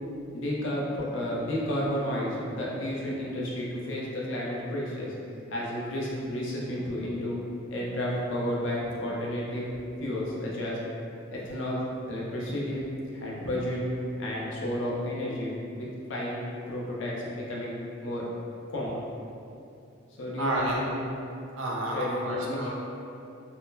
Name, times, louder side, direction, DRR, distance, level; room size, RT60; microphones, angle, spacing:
voice 1, 0.3-5.1 5.5-7.4 7.7-9.7 10.0-10.8 11.3-11.8 12.1-12.8 13.1-13.8 14.2-18.2 18.7-19.1 20.2-21.0 21.9-22.7, left 1 dB, 65° left, -5 dB, 0.7 m, -32 dB
voice 2, 20.4-20.8 21.6-22.7, right 1 dB, 75° right, -3 dB, 0.6 m, -30 dB
3.9 x 2.1 x 2.7 m, 2.6 s
head